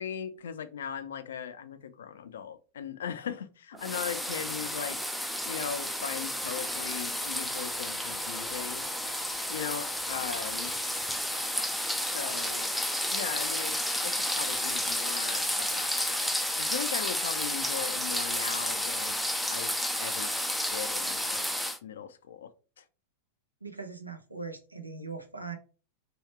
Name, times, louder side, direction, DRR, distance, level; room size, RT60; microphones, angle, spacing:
voice 1, 0.0-5.0 5.5-8.8 9.5-10.8 12.1-12.8 13.1-19.2 19.5-20.3 20.7-21.5 21.8-22.5 22.8-22.9, left 8 dB, 65° left, 0.4 m, -38 dB
sound 1, 3.7-15.0, right 2 dB, 20° right, 0.8 m, -51 dB
sound 2, 3.8-21.8, left 1 dB, ahead, 0.4 m, -31 dB
voice 2, 23.6-25.6, right 4 dB, 85° right, 0.6 m, -40 dB
3.1 x 3.0 x 3.1 m
figure-of-eight pair, 90°, 0 cm